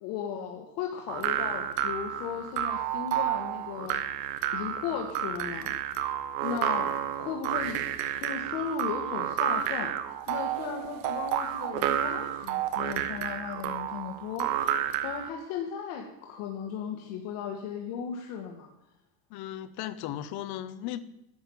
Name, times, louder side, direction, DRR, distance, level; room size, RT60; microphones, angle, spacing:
voice 1, 0.0-4.0 4.3-5.7 6.4-7.8 8.2-9.9 10.3-14.5 15.0-18.7, left 7 dB, 75° left, 1.8 m, -36 dB
sound 1, 1.1-15.3, right 11 dB, 85° right, 1.3 m, -31 dB
voice 2, 19.3-21.0, left 12 dB, 50° left, 0.9 m, -36 dB
11.0 x 7.1 x 9.3 m
cardioid pair, 155°, 47 cm